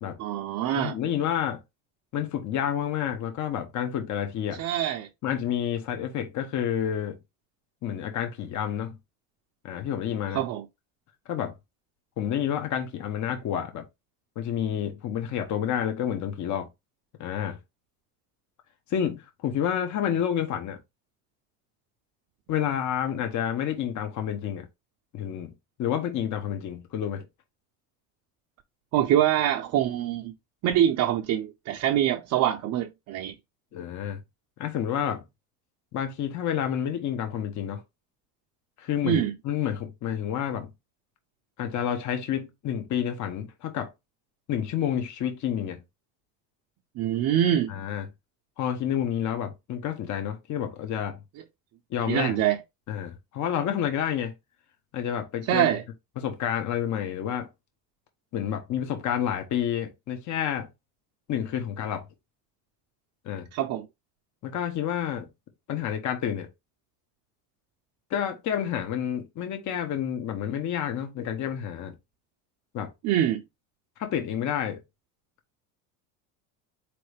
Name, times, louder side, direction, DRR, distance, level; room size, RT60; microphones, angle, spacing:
voice 1, 0.2-1.0 4.6-5.1 10.3-10.6 28.9-30.3 30.6-33.3 39.0-39.4 47.0-47.7 52.1-52.6 55.5-55.8 63.5-63.9 73.0-73.4, right 11 dB, 50° right, 0.7 m, -24 dB
voice 2, 0.7-1.6 2.1-4.6 5.2-7.2 7.8-9.0 9.6-10.4 11.3-11.5 12.2-13.9 14.4-16.7 17.2-17.6 18.9-20.8 22.5-24.7 25.1-25.5 25.8-27.3 33.7-34.2 34.6-35.3 35.9-37.8 38.8-40.7 41.6-43.9 44.5-45.8 47.7-48.0 48.6-51.2 51.9-52.4 52.9-54.3 54.9-55.7 56.2-57.5 58.3-60.7 61.3-62.1 63.2-63.5 64.4-65.3 65.7-66.5 68.1-71.9 72.7-72.9 74.0-74.8, left 9 dB, 45° left, 1.1 m, -29 dB
4.1 x 3.2 x 3.3 m
supercardioid pair, 110°, 39 cm